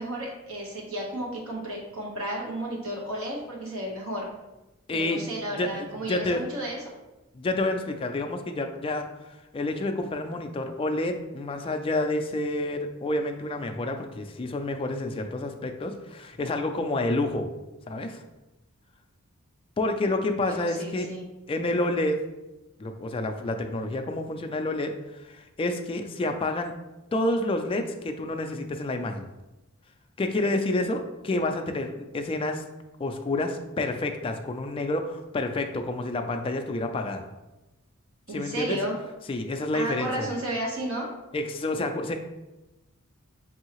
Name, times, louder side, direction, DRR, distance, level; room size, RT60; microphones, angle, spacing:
voice 1, 0.0-4.3 4.9-6.8 20.4-21.2 38.3-38.9 39.7-41.1, right 1 dB, 65° right, -3 dB, 1.2 m, -33 dB
voice 2, 4.9-6.4 7.3-17.5 17.9-18.2 19.8-21.1 21.5-22.2 22.8-24.9 25.2-26.7 27.1-29.3 30.2-32.6 33.0-37.2 38.3-38.8 39.3-40.3 41.3-42.2, left 2 dB, 25° left, 5 dB, 0.3 m, -29 dB
5.5 x 2.7 x 3.0 m, 1.0 s
head